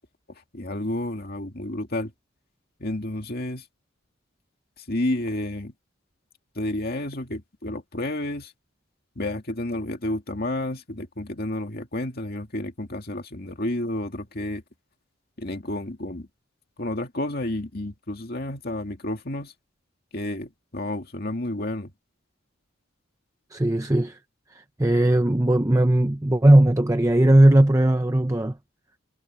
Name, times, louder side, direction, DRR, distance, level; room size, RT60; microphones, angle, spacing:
voice 1, 0.3-2.1 2.8-3.7 4.8-5.7 6.6-8.5 9.2-14.6 15.4-16.3 16.8-19.5 20.1-21.9, left 1 dB, 45° left, 2.3 m, -30 dB
voice 2, 23.5-24.2 24.5-28.6, right 1 dB, 15° right, 0.7 m, -18 dB
head